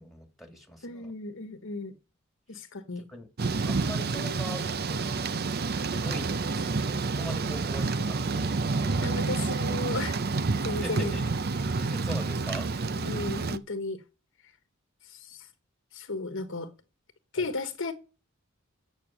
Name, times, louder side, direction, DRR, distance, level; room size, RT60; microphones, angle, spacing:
voice 1, 0.0-1.1 3.1-3.3 3.7-5.1 5.9-9.1 10.8-11.2 11.8-12.7 17.4-17.5, equal, ahead, 2.5 m, -42 dB
voice 2, 0.8-1.9 2.5-3.0 9.0-10.2 10.6-11.1 13.0-14.0 15.1-15.5 15.9-16.7 17.3-17.9, left 3 dB, 65° left, 1.3 m, -34 dB
Thunder / Rain, 3.4-13.6, right 3 dB, 50° right, 0.6 m, -29 dB
9.0 x 6.2 x 8.4 m
head